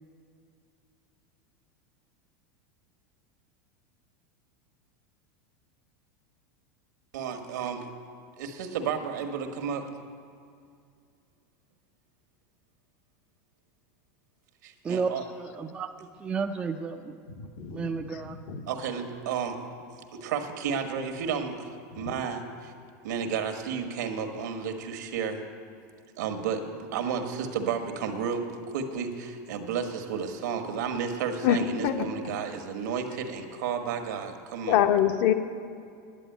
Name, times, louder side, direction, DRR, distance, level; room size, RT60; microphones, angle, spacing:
voice 1, 7.1-7.8 8.4-9.9 14.6-15.2 18.7-19.6 20.1-21.7 22.0-22.7 23.0-25.4 26.2-34.8, right 6 dB, 80° right, 6 dB, 1.4 m, -32 dB
voice 2, 15.4-15.9 16.2-17.1 17.7-18.4, right 5 dB, 10° right, 4 dB, 0.4 m, -31 dB
voice 3, 17.6-17.9 18.5-18.6 22.0-22.1 31.4-31.6 31.8-31.9 34.7-35.3, left 10 dB, 50° left, 7 dB, 0.9 m, -23 dB
9.9 x 8.8 x 9.2 m, 2.4 s
supercardioid pair, 165°, 9 cm